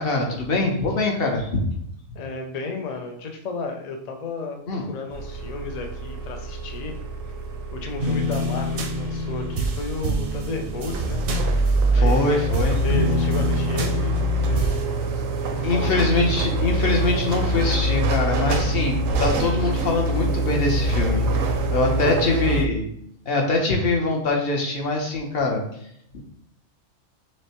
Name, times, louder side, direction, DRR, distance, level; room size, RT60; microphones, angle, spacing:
voice 1, 0.0-1.6 4.7-4.9 11.9-12.8 15.6-21.2 21.7-22.9 23.3-25.6 26.1-26.2, left 2 dB, 55° left, 1 dB, 0.9 m, -23 dB
voice 2, 2.1-7.0 7.7-12.4 12.8-14.1 14.5-14.8 15.5-16.1 22.0-22.4, left 3 dB, 75° left, 4 dB, 0.3 m, -33 dB
sound 1, 5.1-22.7, right 1 dB, 85° right, 1.0 m, -25 dB
sound 2, 8.0-12.2 12.5-14.8, equal, 60° right, 0.7 m, -27 dB
6.1 x 2.1 x 2.9 m, 0.71 s
omnidirectional pair, 1.3 m